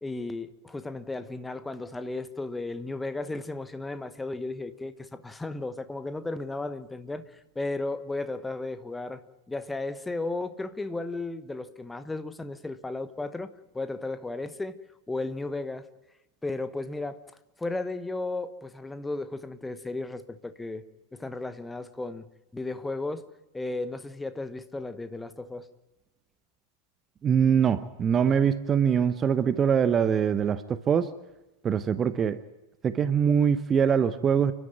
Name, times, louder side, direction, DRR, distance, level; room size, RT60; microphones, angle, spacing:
voice 1, 0.0-7.2 7.5-14.8 15.1-15.9 16.4-17.2 17.6-20.8 21.1-22.2 22.5-23.2 23.5-25.7, left 2 dB, 10° left, 12 dB, 1.2 m, -34 dB
voice 2, 27.2-31.1 31.6-32.4 32.8-34.5, right 7 dB, 25° right, 13 dB, 0.9 m, -23 dB
29.5 x 12.5 x 9.3 m, 0.99 s
figure-of-eight pair, 90°, 0 cm